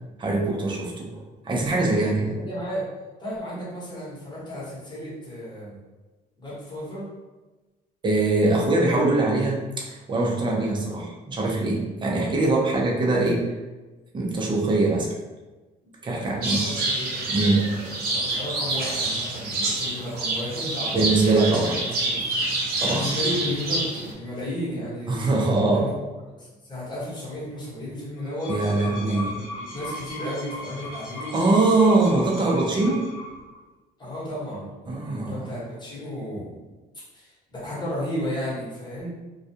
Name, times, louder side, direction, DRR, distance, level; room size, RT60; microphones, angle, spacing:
voice 1, 0.2-2.4 8.0-13.4 14.1-15.1 16.0-16.6 17.3-17.7 20.9-21.8 22.8-23.1 25.1-25.9 28.5-29.3 31.3-33.0 34.9-35.5, right 2 dB, 25° right, -2 dB, 0.6 m, -22 dB
voice 2, 2.3-2.8 3.2-5.8 6.4-7.1 15.8-22.2 22.8-25.3 25.7-25.9 26.4-28.5 29.0-31.4 32.1-32.2 34.0-36.5 37.1-39.2, equal, 25° left, -7 dB, 1.2 m, -34 dB
sound 1, 16.4-24.1, right 2 dB, 65° right, 0.7 m, -27 dB
sound 2, 28.2-33.6, left 1 dB, 55° left, 0.8 m, -37 dB
2.3 x 2.3 x 2.7 m, 1.2 s
cardioid pair, 110°, 17 cm